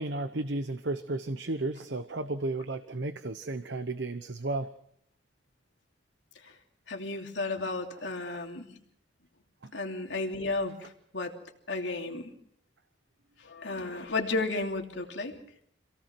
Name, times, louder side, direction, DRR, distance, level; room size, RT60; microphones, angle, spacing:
voice 1, 0.0-4.7 9.6-9.7, right 2 dB, 70° right, 9 dB, 1.0 m, -33 dB
voice 2, 6.9-8.7 9.7-11.3 11.7-12.3 13.4-15.4, left 3 dB, 75° left, 2 dB, 3.0 m, -33 dB
27.5 x 17.5 x 6.1 m, 0.70 s
head